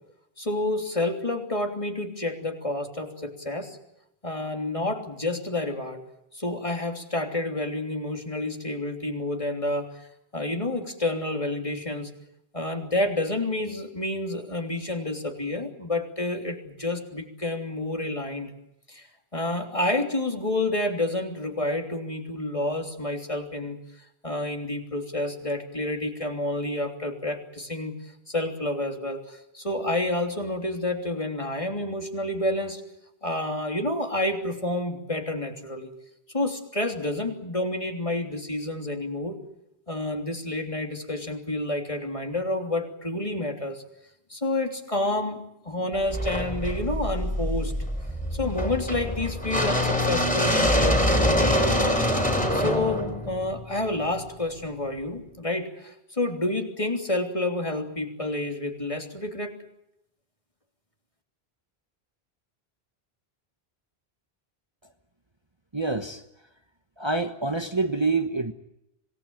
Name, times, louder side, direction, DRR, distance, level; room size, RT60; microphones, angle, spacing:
voice 1, 0.4-3.8 4.2-6.0 6.3-9.9 10.3-12.1 12.5-18.5 18.9-19.1 19.3-23.8 24.2-27.9 28.3-32.8 33.2-35.9 36.3-39.4 39.9-43.8 44.3-47.7 48.3-52.0 52.5-59.6, left 1 dB, 30° left, 3 dB, 3.3 m, -29 dB
sound 1, 46.1-54.2, equal, 10° left, 4.1 m, -25 dB
voice 2, 65.7-66.2 67.0-68.5, right 3 dB, 25° right, 6 dB, 1.3 m, -26 dB
26.5 x 19.0 x 9.0 m, 0.83 s
omnidirectional pair, 1.0 m